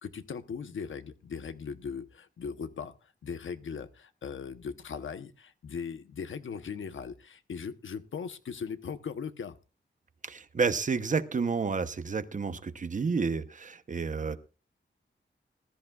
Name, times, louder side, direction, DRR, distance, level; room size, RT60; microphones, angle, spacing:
voice 1, 0.0-9.6, left 6 dB, 90° left, 10 dB, 1.0 m, -39 dB
voice 2, 10.2-14.4, right 5 dB, 40° right, 11 dB, 0.9 m, -30 dB
19.5 x 13.5 x 2.4 m, 0.33 s
wide cardioid pair, 150°, 20 cm